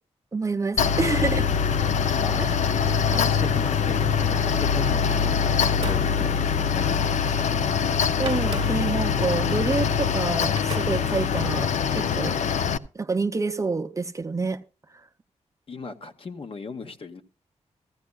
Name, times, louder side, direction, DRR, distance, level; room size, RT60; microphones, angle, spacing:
voice 1, 0.3-1.5 2.4-2.6 8.2-12.4 12.9-14.6 14.9-15.1, right 4 dB, 25° right, 0.6 m, -28 dB
sound 1, 0.7-1.9 2.8-5.1 5.5-7.5 7.7-7.8 8.2-10.2 10.6-11.5, right 4 dB, 45° right, 1.0 m, -41 dB
Mechanical fan, 0.8-12.8, left 7 dB, 80° left, 0.5 m, -23 dB
voice 2, 2.2-2.6 3.1-7.1 15.7-17.2, left 4 dB, 50° left, 1.0 m, -37 dB
15.0 x 15.0 x 2.3 m
wide cardioid pair, 105°, 12 cm